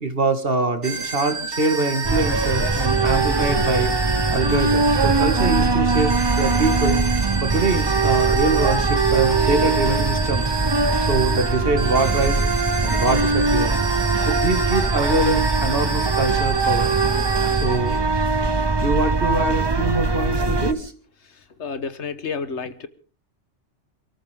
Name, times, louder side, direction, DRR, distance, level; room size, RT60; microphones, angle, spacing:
voice 1, 0.0-3.9 4.3-7.0 7.4-10.5 11.0-12.4 12.8-16.9 17.6-18.3 18.8-20.9, right 3 dB, 50° right, 8 dB, 2.2 m, -24 dB
sound 1, 0.8-18.0, right 3 dB, 75° right, 2.5 m, -30 dB
sound 2, 2.0-20.7, right 3 dB, 25° right, 0.8 m, -21 dB
voice 2, 21.3-22.9, left 5 dB, 70° left, 13 dB, 1.5 m, -31 dB
28.5 x 14.0 x 3.6 m, 0.39 s
omnidirectional pair, 1.2 m